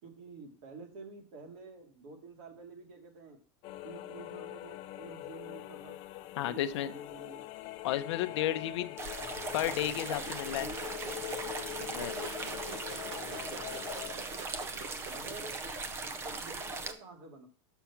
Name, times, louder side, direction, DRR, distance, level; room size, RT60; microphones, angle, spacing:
voice 1, 0.0-3.4 3.8-6.0 6.4-7.5 10.1-11.0 12.0-14.4 15.1-15.6 16.0-17.5, right 3 dB, 50° right, 3 dB, 2.2 m, -50 dB
sound 1, 3.6-14.1, left 17 dB, 30° left, 0.5 m, -43 dB
voice 2, 6.4-6.9 7.8-9.0 9.5-10.7 11.9-12.1, left 13 dB, 65° left, 11 dB, 0.7 m, -32 dB
sound 2, 9.0-16.9, right 3 dB, 15° right, 0.6 m, -39 dB
sound 3, 10.7-15.6, right 4 dB, 70° right, 1.5 m, -47 dB
6.9 x 6.2 x 5.8 m, 0.41 s
supercardioid pair, 175°, 16 cm